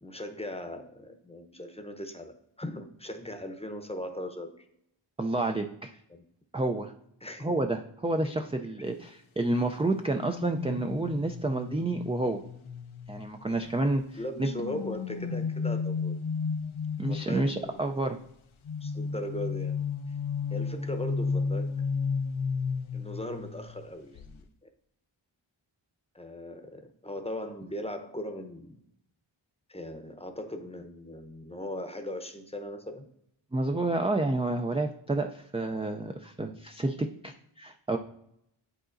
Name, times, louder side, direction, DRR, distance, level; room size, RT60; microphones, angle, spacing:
voice 1, 0.0-4.7 6.1-6.2 7.2-7.5 8.2-8.7 13.5-13.7 14.2-16.2 17.0-18.0 18.8-19.8 20.1-20.2 20.5-21.7 22.9-24.7 26.1-28.8 29.7-33.1, left 1 dB, 15° left, 6 dB, 0.7 m, -39 dB
voice 2, 5.2-5.9 6.5-6.9 7.4-12.4 13.1-14.5 17.0-18.2 33.5-38.0, right 2 dB, 15° right, 5 dB, 0.3 m, -29 dB
sound 1, 10.1-13.7 14.4-17.6 18.6-23.9 24.1-24.4, left 5 dB, 80° left, 0.6 m, -33 dB
11.0 x 3.8 x 2.5 m, 0.75 s
wide cardioid pair, 60°, 48 cm